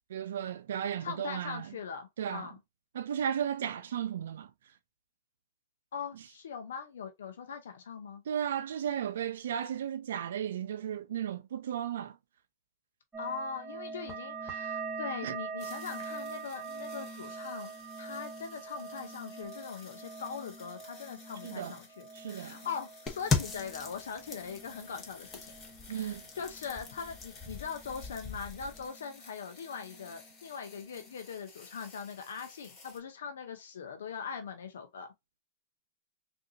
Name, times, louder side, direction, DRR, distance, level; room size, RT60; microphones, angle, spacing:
voice 1, 0.1-1.7 2.2-2.5 2.9-4.5 8.3-12.2 15.2-15.4 21.4-21.8 22.1-22.6 25.9-26.2, right 9 dB, 80° right, 0.3 m, -35 dB
voice 2, 1.0-2.6 5.9-8.2 13.2-25.5 25.9-35.1, left 6 dB, 80° left, 0.6 m, -41 dB
sound 1, 13.1-28.3 28.6-29.4 29.7-30.4 30.8-31.2, right 5 dB, 10° right, 1.0 m, -44 dB
sound 2, 15.6-33.0, left 4 dB, 35° left, 2.2 m, -54 dB
sound 3, 23.1-28.9, left 5 dB, 20° left, 0.9 m, -38 dB
3.6 x 2.6 x 2.6 m
hypercardioid pair, 130°, 0 cm